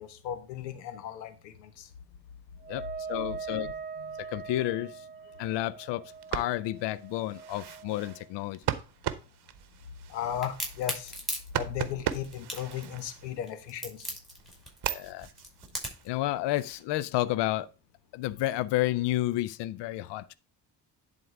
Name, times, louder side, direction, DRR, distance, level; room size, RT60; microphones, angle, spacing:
voice 1, 0.0-1.9 10.1-11.1 11.6-14.1, left 10 dB, 85° left, 0.9 m, -36 dB
Wind instrument woodwind instrument, 2.6-8.3, right 5 dB, 20° right, 0.7 m, -42 dB
voice 2, 2.7-3.7 4.2-5.0 5.4-8.6 14.9-15.3 16.0-17.7 18.1-20.3, left 15 dB, 60° left, 0.6 m, -31 dB
sound 1, 6.1-13.7 14.2-16.8, right 11 dB, 50° right, 1.0 m, -38 dB
Crack, 10.4-16.1, equal, ahead, 5.3 m, -37 dB
10.5 x 3.9 x 4.8 m
hypercardioid pair, 45°, 50 cm